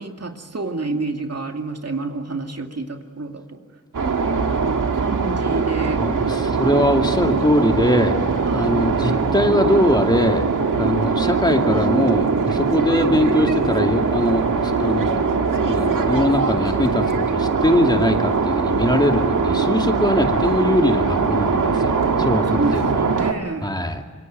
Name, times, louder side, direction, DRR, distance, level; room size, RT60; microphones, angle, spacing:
voice 1, 0.0-3.6 4.0-6.0 8.4-8.7 22.2-23.7, right 3 dB, 50° right, 4 dB, 2.5 m, -29 dB
sound 1, 3.9-23.3, right 5 dB, 85° right, 1.9 m, -21 dB
voice 2, 6.0-8.2 8.5-10.4 10.7-15.3 15.7-23.0 23.6-24.0, left 1 dB, 15° left, 3 dB, 2.4 m, -21 dB
26.0 x 23.5 x 9.2 m, 1.4 s
wide cardioid pair, 75°, 31 cm